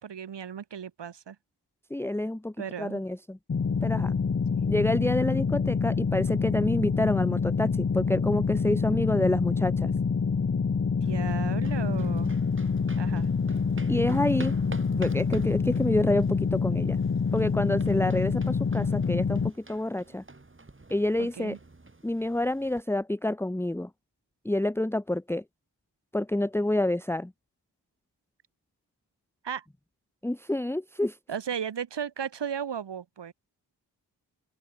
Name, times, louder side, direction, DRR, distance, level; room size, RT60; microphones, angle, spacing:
voice 1, 0.0-1.4 2.6-3.0 4.5-4.7 11.0-12.3 13.0-13.3 21.2-21.6 29.4-29.7 31.3-33.3, right 8 dB, 80° right, 3.5 m, -35 dB
voice 2, 1.9-3.4 3.8-4.1 4.7-9.9 13.9-14.6 14.9-17.0 17.3-20.2 20.9-21.6 22.0-23.9 24.4-25.4 26.1-27.3 30.2-31.2, left 1 dB, 5° left, 1.0 m, -28 dB
sound 1, 3.5-19.5, left 5 dB, 35° left, 1.1 m, -27 dB
sound 2, 11.0-22.8, right 3 dB, 30° right, 4.0 m, -47 dB
open air
cardioid pair, 45°, 42 cm